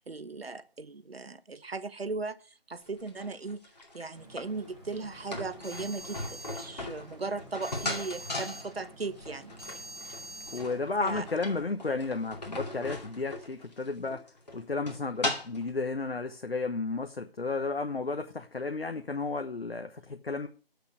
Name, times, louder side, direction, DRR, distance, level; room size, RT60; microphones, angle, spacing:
voice 1, 0.0-3.6 3.9-9.5 11.0-11.2, right 3 dB, 80° right, 1.0 m, -37 dB
sound 1, 2.9-15.7, left 2 dB, 45° left, 2.4 m, -39 dB
sound 2, 4.1-11.5, right 2 dB, 25° right, 3.1 m, -47 dB
voice 2, 10.5-14.2 14.5-20.5, left 3 dB, 75° left, 1.2 m, -33 dB
8.2 x 6.6 x 8.0 m
figure-of-eight pair, 175°, 30 cm